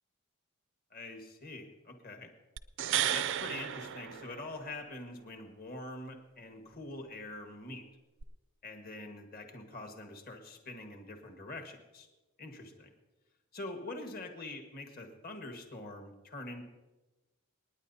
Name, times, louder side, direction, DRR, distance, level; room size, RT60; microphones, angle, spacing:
voice 1, 0.9-2.3 3.0-7.8 8.6-12.1 12.4-12.9 13.5-16.6, left 2 dB, 45° left, 4 dB, 1.5 m, -44 dB
sound 1, 2.6-4.8 8.2-8.3, right 11 dB, 60° right, 0.4 m, -34 dB
29.0 x 9.8 x 2.8 m, 1.1 s
head